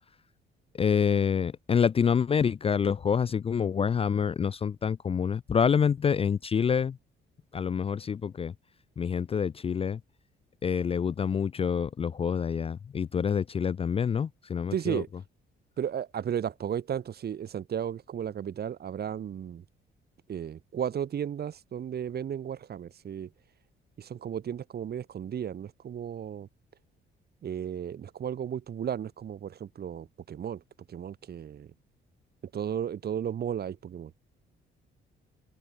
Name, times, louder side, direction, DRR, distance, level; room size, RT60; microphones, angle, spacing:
voice 1, 0.8-7.0 7.5-8.5 9.0-10.0 10.6-15.0, left 7 dB, 30° left, 0.4 m, -27 dB
voice 2, 14.7-15.1 15.8-19.6 20.3-23.3 24.0-26.5 27.4-30.6 30.9-31.7 32.5-34.1, right 9 dB, 55° right, 1.4 m, -34 dB
open air
cardioid pair, 90°, 20 cm